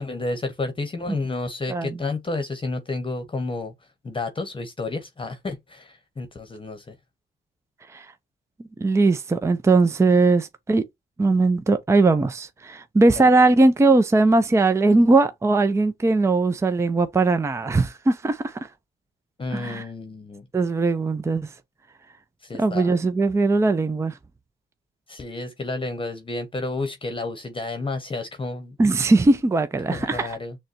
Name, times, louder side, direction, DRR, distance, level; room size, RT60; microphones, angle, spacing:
voice 1, 0.0-3.7 4.0-6.9 13.2-13.3 19.4-20.5 22.4-23.0 25.1-28.7 29.9-30.6, left 3 dB, 25° left, 1.0 m, -31 dB
voice 2, 8.8-10.8 11.2-18.5 19.5-19.8 20.5-21.5 22.6-24.1 28.8-30.3, right 3 dB, 15° right, 0.5 m, -19 dB
6.4 x 2.3 x 2.7 m
cardioid pair, 90°, 20 cm